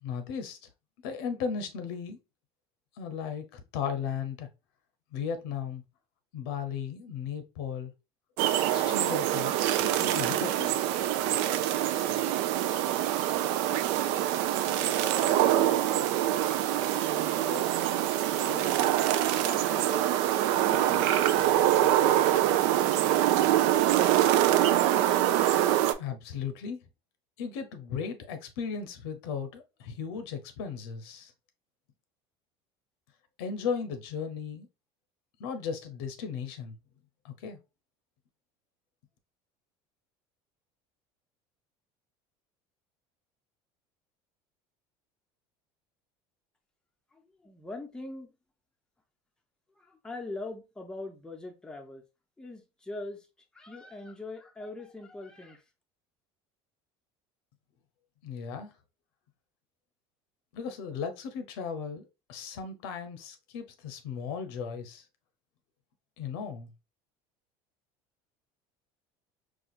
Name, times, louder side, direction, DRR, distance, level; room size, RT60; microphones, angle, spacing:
voice 1, 0.0-0.6 1.0-2.2 3.0-4.5 5.1-5.8 6.3-7.9 8.7-10.8 26.0-26.8 27.4-31.3 33.4-34.7 35.4-36.7 37.2-37.6 58.2-58.7 60.5-62.0 62.3-65.0 66.2-66.7, left 6 dB, 85° left, 0.7 m, -36 dB
sound 1, 8.4-25.9, right 12 dB, 75° right, 0.4 m, -25 dB
voice 2, 14.6-16.0 17.0-17.7 18.4-20.1 20.5-22.0 47.1-48.3 49.8-52.0 52.4-53.3 53.5-55.6, left 2 dB, 5° left, 0.6 m, -42 dB
4.2 x 2.4 x 2.4 m
supercardioid pair, 125°, 12 cm